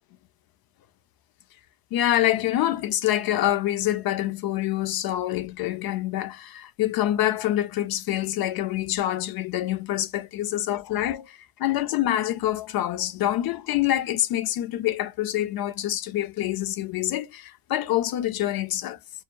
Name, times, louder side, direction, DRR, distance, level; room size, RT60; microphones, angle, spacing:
voice 1, 1.9-19.0, left 13 dB, 50° left, 0.6 m, -26 dB
2.3 x 2.1 x 3.0 m
supercardioid pair, 85°, 46 cm